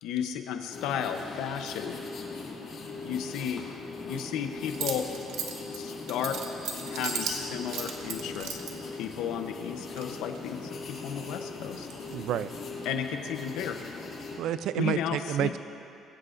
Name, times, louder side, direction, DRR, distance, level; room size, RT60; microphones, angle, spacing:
voice 1, 0.0-2.0 3.0-3.6 4.0-5.1 5.7-6.4 6.8-8.6 8.9-11.9 12.8-13.8 14.8-15.5, left 8 dB, 90° left, 6 dB, 0.8 m, -33 dB
sound 1, 0.7-14.4, left 4 dB, 45° left, 2.4 m, -40 dB
sound 2, 4.7-8.7 9.7-10.5 10.9-12.6, right 6 dB, 80° right, 1.6 m, -37 dB
voice 2, 12.1-12.5 14.4-15.6, right 10 dB, 60° right, 14 dB, 0.4 m, -29 dB
22.5 x 16.0 x 2.6 m, 2.8 s
cardioid pair, 175°, 0 cm